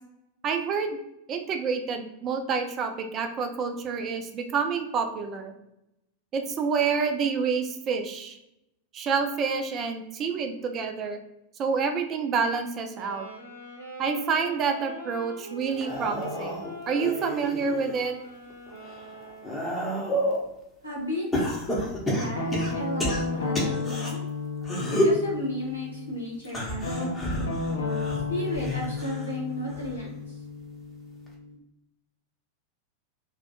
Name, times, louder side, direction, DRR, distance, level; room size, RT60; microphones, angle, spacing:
voice 1, 0.4-1.0 1.3-5.5 6.3-8.4 8.9-11.2 11.6-13.3 14.0-18.2, right 5 dB, 30° right, 6 dB, 0.3 m, -28 dB
sound 1, 12.9-20.0, right 1 dB, 85° right, 0.8 m, -42 dB
sound 2, 15.7-18.0 18.5-20.5 21.3-24.1 24.6-25.2 26.4-29.3 29.7-30.1 31.3-31.4, equal, 15° left, 0.7 m, -30 dB
voice 2, 20.8-21.2 22.0-24.2 24.9-27.1 28.3-30.1, left 1 dB, 90° left, -5 dB, 1.0 m, -34 dB
Guitar, 22.4-26.1 26.8-31.5, left 3 dB, 70° left, 0.5 m, -32 dB
2.5 x 2.1 x 2.7 m, 0.85 s
figure-of-eight pair, 90°, 0 cm